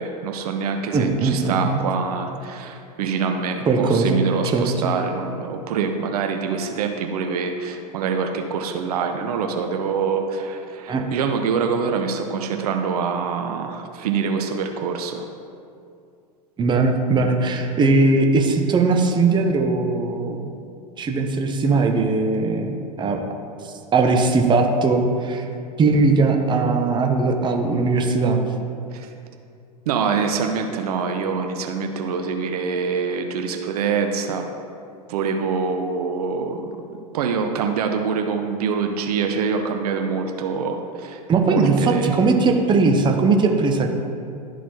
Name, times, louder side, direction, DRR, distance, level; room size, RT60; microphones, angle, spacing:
voice 1, 0.0-15.3 28.9-29.1 29.9-34.5 35.1-36.7 37.1-42.1, right 5 dB, 70° right, 4 dB, 0.6 m, -25 dB
voice 2, 0.9-1.8 3.7-4.9 10.9-11.0 16.6-20.5 21.0-23.2 23.9-25.4 25.8-28.4 41.3-43.9, right 3 dB, 20° right, 3 dB, 0.8 m, -19 dB
12.0 x 4.0 x 3.1 m, 2.4 s
hypercardioid pair, 95°, 20 cm